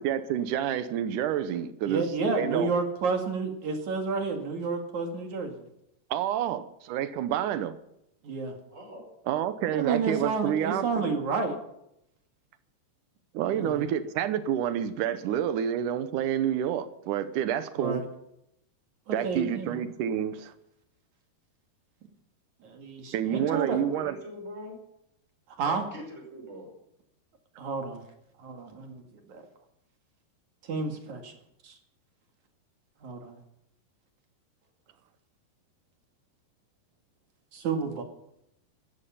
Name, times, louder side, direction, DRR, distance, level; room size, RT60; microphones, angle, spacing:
voice 1, 0.0-2.7 6.1-7.8 9.3-11.1 13.3-18.0 19.1-20.5 23.1-24.2, right 10 dB, 75° right, 11 dB, 1.9 m, -29 dB
voice 2, 1.8-5.6 8.2-8.6 9.7-11.6 13.5-13.8 17.8-18.1 19.1-19.8 22.6-23.8 25.6-25.8 27.6-28.0 28.4-29.4 30.7-31.2 31.6-31.7 33.0-33.3 37.5-38.0, right 4 dB, 50° right, 4 dB, 3.0 m, -30 dB
voice 3, 8.7-9.0 23.3-24.8 25.7-26.7, equal, 15° right, 1 dB, 5.5 m, -42 dB
16.5 x 13.5 x 5.7 m, 0.79 s
omnidirectional pair, 4.8 m